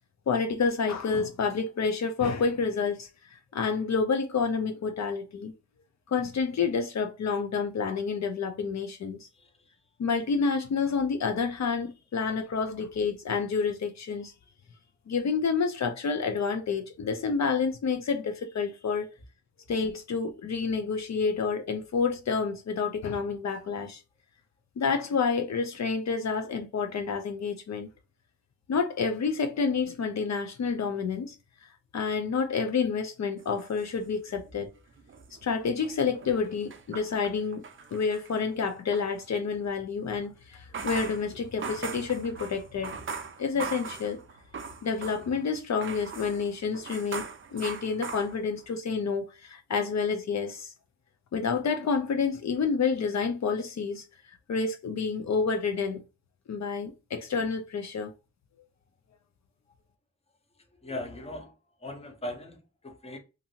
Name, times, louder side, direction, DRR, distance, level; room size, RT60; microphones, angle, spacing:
voice 1, 0.3-5.5 6.1-9.3 10.0-14.3 15.1-19.1 19.7-24.0 24.8-27.9 28.7-31.4 31.9-34.7 35.4-37.7 37.9-43.0 43.4-44.2 44.8-50.7 51.3-54.0 54.5-56.0 56.5-58.1, left 5 dB, 65° left, 0.5 m, -29 dB
voice 2, 9.3-9.8 60.6-63.2, left 1 dB, 20° left, 0.6 m, -40 dB
sound 1, 33.4-34.6 34.9-39.1 40.5-45.4 45.8-48.7, right 5 dB, 45° right, 0.4 m, -40 dB
2.8 x 2.5 x 2.7 m
wide cardioid pair, 155°, 30 cm